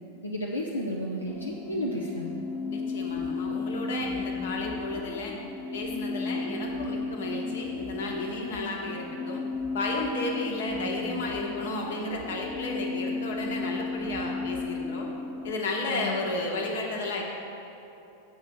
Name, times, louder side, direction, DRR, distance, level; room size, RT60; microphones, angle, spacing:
voice 1, 0.2-2.3 15.9-16.3, left 1 dB, 85° left, -3 dB, 0.7 m, -32 dB
sound 1, 1.3-15.5, left 3 dB, 20° left, 0.4 m, -34 dB
voice 2, 2.7-5.3 5.7-9.4 9.7-15.1 15.4-17.2, left 2 dB, 60° left, 0 dB, 1.3 m, -33 dB
8.1 x 5.6 x 6.3 m, 2.9 s
figure-of-eight pair, 90°, 0 cm